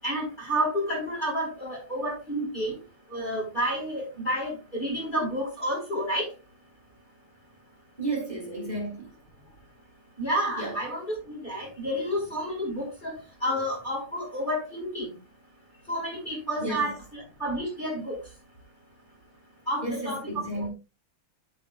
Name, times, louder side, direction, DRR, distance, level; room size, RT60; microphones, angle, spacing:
voice 1, 0.0-2.8 3.1-6.3 10.2-13.1 13.4-15.1 15.9-18.2 19.7-20.2 20.6-20.7, equal, 20° left, 4.7 m, -30 dB
voice 2, 8.0-9.1 10.6-10.7 16.6-16.9 19.8-20.7, right 2 dB, 20° right, 4.2 m, -32 dB
13.5 x 6.5 x 2.3 m
omnidirectional pair, 2.4 m